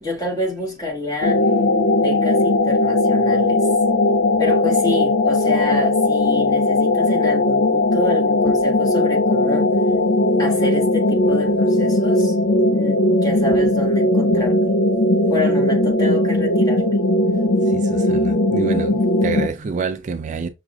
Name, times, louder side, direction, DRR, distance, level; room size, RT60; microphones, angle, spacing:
voice 1, 0.0-1.4 1.9-3.7 4.4-9.7 10.4-12.4 12.7-14.7 15.3-17.0, left 2 dB, 20° left, 1.6 m, -27 dB
sound 1, 1.2-19.5, left 2 dB, 75° left, 0.6 m, -18 dB
voice 2, 17.7-20.5, right 4 dB, 40° right, 0.3 m, -27 dB
6.0 x 2.5 x 2.3 m
head